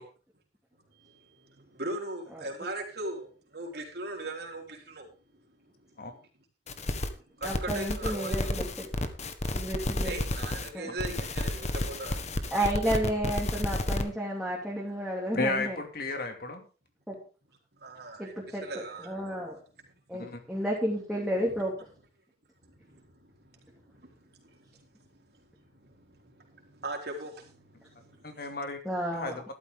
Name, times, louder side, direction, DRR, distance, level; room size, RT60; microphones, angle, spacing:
voice 1, 0.9-5.9 7.4-8.6 10.0-12.5 17.7-19.4 19.8-19.9 22.6-28.5, right 2 dB, 65° right, 3.9 m, -41 dB
sound 1, 6.7-7.1 7.4-10.7 11.0-14.0, left 1 dB, 40° left, 1.5 m, -31 dB
voice 2, 7.4-8.9 9.5-10.1 10.7-10.9 12.5-15.8 17.1-17.2 18.2-19.6 20.1-21.7 28.8-29.4, equal, 5° right, 2.8 m, -32 dB
voice 3, 15.3-16.6 20.2-20.4 28.2-28.8 29.1-29.4, left 3 dB, 60° left, 2.6 m, -33 dB
14.0 x 12.0 x 3.8 m
head